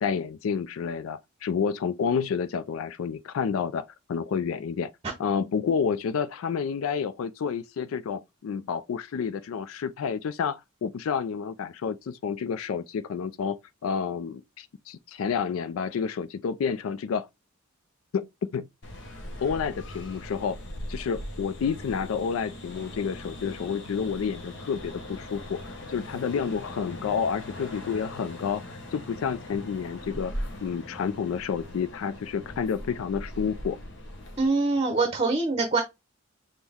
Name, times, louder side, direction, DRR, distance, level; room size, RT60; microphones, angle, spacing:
voice 1, 0.0-4.9 5.2-13.6 13.8-17.3 18.1-18.3 18.5-18.7 19.4-20.6 20.9-25.6 25.9-28.6 28.9-30.3 30.6-33.8, left 6 dB, 80° left, 0.4 m, -29 dB
sound 1, 18.8-34.5, left 1 dB, 60° left, 1.1 m, -40 dB
voice 2, 34.4-35.8, right 3 dB, 30° right, 0.7 m, -24 dB
6.1 x 2.1 x 3.5 m
head